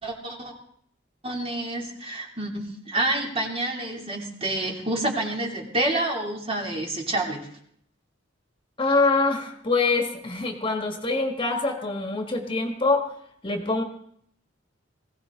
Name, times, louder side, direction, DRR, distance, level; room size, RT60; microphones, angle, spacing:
voice 1, 0.0-0.5 1.2-7.5, right 1 dB, 30° right, 0 dB, 2.9 m, -28 dB
voice 2, 8.8-13.1 13.4-13.8, left 3 dB, 25° left, 3 dB, 1.8 m, -24 dB
21.0 x 16.5 x 3.8 m, 0.66 s
head